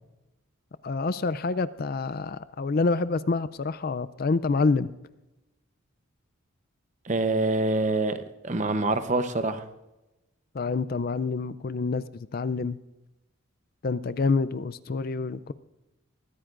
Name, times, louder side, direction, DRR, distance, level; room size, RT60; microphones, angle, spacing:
voice 1, 0.8-4.9 10.5-12.8 13.8-15.5, left 4 dB, 45° left, 0.4 m, -27 dB
voice 2, 7.1-8.2 8.4-9.6, right 2 dB, 35° right, 0.8 m, -25 dB
22.5 x 14.5 x 2.5 m
head